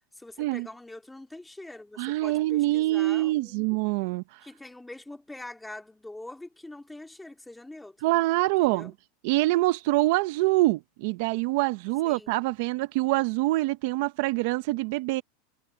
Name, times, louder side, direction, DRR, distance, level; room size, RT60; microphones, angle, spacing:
voice 1, 0.2-3.6 4.4-8.1 8.6-8.9 12.0-12.4, left 2 dB, 5° left, 3.3 m, -44 dB
voice 2, 2.0-4.4 8.0-8.9 9.2-15.2, right 19 dB, 60° right, 0.8 m, -25 dB
supercardioid pair, 145°, 0 cm